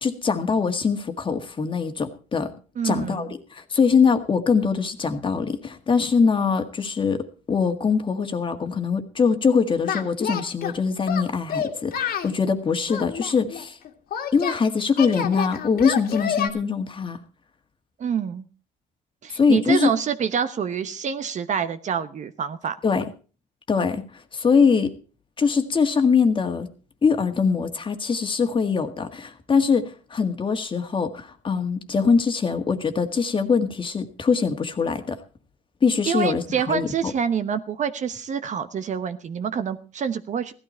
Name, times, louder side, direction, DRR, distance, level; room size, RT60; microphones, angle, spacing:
voice 1, 0.0-2.5 2.8-13.8 14.3-17.2 19.3-19.9 22.8-23.0 23.7-24.0 24.3-24.9 25.4-26.7 27.0-29.8 30.1-35.2 35.8-37.1, left 5 dB, 30° left, 6 dB, 1.8 m, -22 dB
voice 2, 2.8-3.3 18.0-18.4 19.2-22.8 36.1-40.5, right 7 dB, 45° right, 9 dB, 1.1 m, -26 dB
Singing, 9.8-10.8 11.1-12.3 12.9-14.6 15.0-16.5, left 8 dB, 65° left, 2.1 m, -28 dB
16.0 x 12.5 x 4.4 m, 0.37 s
cardioid pair, 110°, 17 cm